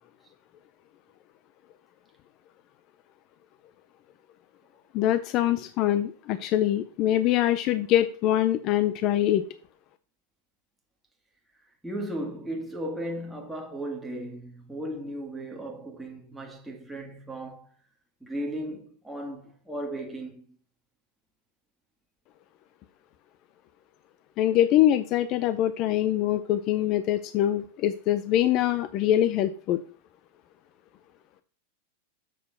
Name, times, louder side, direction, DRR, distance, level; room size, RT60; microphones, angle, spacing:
voice 1, 4.9-9.4 24.4-29.8, left 12 dB, 40° left, 0.4 m, -24 dB
voice 2, 11.8-17.7 18.2-20.4, right 1 dB, 5° right, 1.7 m, -36 dB
7.4 x 4.4 x 5.6 m
supercardioid pair, 145°, 0 cm